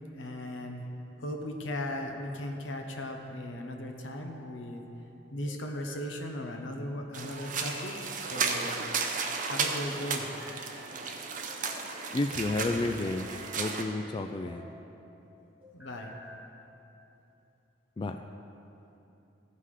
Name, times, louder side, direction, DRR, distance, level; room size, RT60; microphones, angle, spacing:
voice 1, 0.1-0.9 1.2-4.8 5.3-8.8 9.5-10.3 15.7-16.1, left 1 dB, 75° left, 3 dB, 1.0 m, -37 dB
sound 1, 1.8-2.5 3.8-4.6 5.4-6.2 7.3-8.1 8.7-9.3 10.0-10.8 11.5-12.1 12.8-13.8 14.3-14.8 15.6-16.4, left 1 dB, 5° right, 2.1 m, -51 dB
sound 2, 7.1-13.8, right 5 dB, 45° right, 0.7 m, -34 dB
voice 2, 12.1-14.7 18.0-18.2, left 2 dB, 25° left, 5 dB, 0.3 m, -31 dB
15.0 x 5.6 x 4.9 m, 2.9 s
head